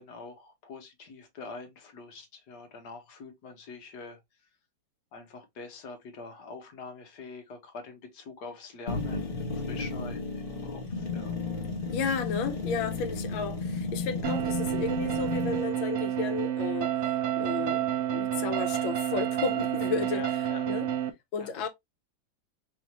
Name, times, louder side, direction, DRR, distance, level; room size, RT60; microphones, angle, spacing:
voice 1, 0.0-4.2 5.1-11.4 13.3-13.4 20.1-20.7 21.4-21.7, left 4 dB, 65° left, 1.5 m, -44 dB
sound 1, 8.9-15.6, left 3 dB, 35° left, 1.1 m, -33 dB
voice 2, 11.9-17.0 17.4-20.2 20.7-20.9 21.3-21.7, left 5 dB, 85° left, 1.6 m, -33 dB
sound 2, 14.2-21.1, right 11 dB, 75° right, 0.6 m, -29 dB
4.8 x 2.8 x 3.0 m
omnidirectional pair, 2.1 m